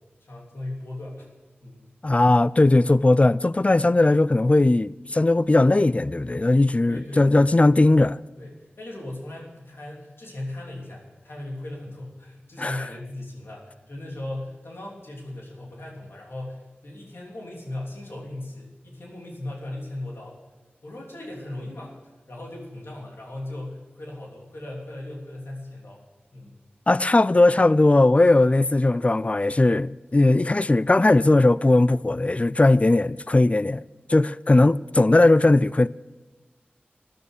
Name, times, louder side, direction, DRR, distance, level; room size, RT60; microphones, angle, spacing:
voice 1, 0.2-1.3 1.6-1.9 6.9-7.5 8.4-20.4 20.8-22.0 22.3-26.0 26.3-26.5 30.1-30.2, left 1 dB, 85° left, 3.2 m, -37 dB
voice 2, 2.0-8.2 12.6-12.8 26.9-33.8 34.1-35.9, left 2 dB, 35° left, 0.4 m, -18 dB
13.5 x 10.5 x 6.6 m
wide cardioid pair, 45°, 4 cm